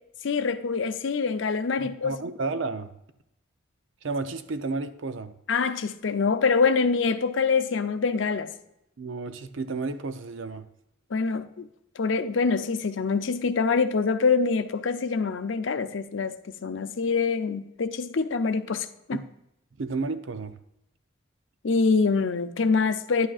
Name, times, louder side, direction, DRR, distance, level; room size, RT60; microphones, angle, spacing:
voice 1, 0.2-2.2 5.5-8.5 11.1-11.7 12.0-19.2 21.6-23.3, left 4 dB, 70° left, 0.5 m, -25 dB
voice 2, 1.8-2.9 4.0-5.3 9.0-10.6 19.1-19.2 19.8-20.6, right 3 dB, 75° right, 0.6 m, -32 dB
11.0 x 8.8 x 2.4 m
head